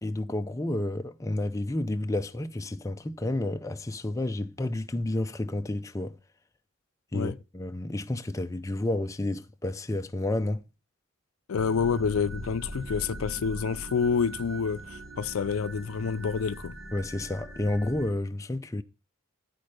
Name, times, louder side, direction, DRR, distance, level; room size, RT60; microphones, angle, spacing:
voice 1, 0.0-6.1 7.1-10.6 16.9-18.8, left 1 dB, 15° left, 0.4 m, -30 dB
voice 2, 11.5-16.8, left 6 dB, 75° left, 0.4 m, -28 dB
sound 1, 11.5-18.1, right 1 dB, 65° right, 1.6 m, -41 dB
10.5 x 4.3 x 6.4 m
head